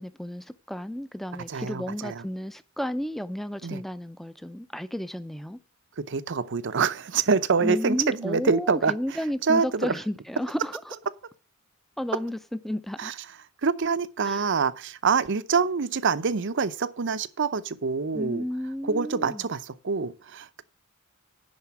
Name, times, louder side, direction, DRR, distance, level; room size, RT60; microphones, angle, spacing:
voice 1, 0.0-5.6 7.6-10.9 12.0-13.1 14.2-14.5 18.1-19.4, equal, ahead, 0.5 m, -33 dB
voice 2, 1.5-2.2 3.6-3.8 6.0-8.9 9.4-9.9 13.0-13.1 13.6-18.4 18.9-20.6, right 5 dB, 60° right, 0.7 m, -26 dB
10.5 x 4.4 x 7.0 m
head